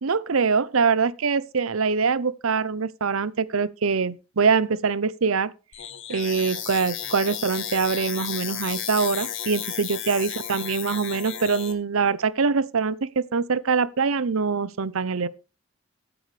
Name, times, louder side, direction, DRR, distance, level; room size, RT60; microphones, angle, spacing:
voice 1, 0.0-5.5 6.1-15.3, right 5 dB, 85° right, 0.7 m, -24 dB
sound 1, 5.7-11.7, left 10 dB, 65° left, 1.8 m, -33 dB
14.5 x 8.6 x 3.3 m
head